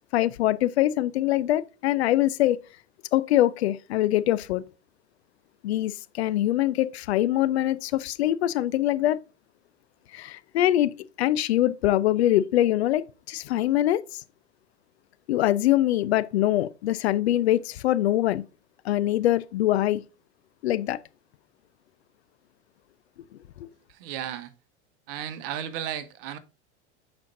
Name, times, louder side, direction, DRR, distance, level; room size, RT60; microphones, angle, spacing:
voice 1, 0.1-2.6 3.1-4.6 5.6-9.2 10.1-14.0 15.3-18.4 18.8-20.0 20.6-21.0 23.6-23.7, left 14 dB, 65° left, 0.6 m, -23 dB
voice 2, 23.9-24.5 25.1-26.4, right 10 dB, 55° right, 1.0 m, -34 dB
11.0 x 4.4 x 2.6 m
figure-of-eight pair, 90°, 35 cm